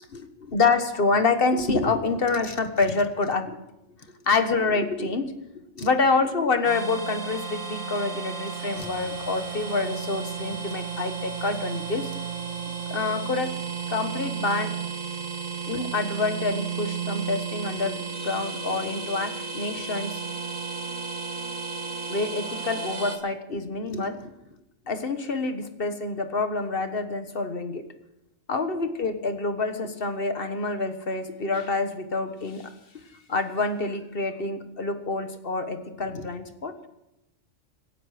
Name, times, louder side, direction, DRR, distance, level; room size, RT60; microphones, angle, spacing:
voice 1, 0.1-3.6 4.0-5.3 5.8-12.1 12.9-13.5 13.9-14.8 15.7-20.2 22.1-24.3 24.9-27.8 28.5-32.7 33.3-36.7, left 3 dB, 50° left, 8 dB, 1.5 m, -27 dB
sound 1, 6.6-23.2, right 6 dB, 80° right, 2.1 m, -33 dB
25.5 x 10.0 x 5.0 m, 0.89 s
omnidirectional pair, 1.3 m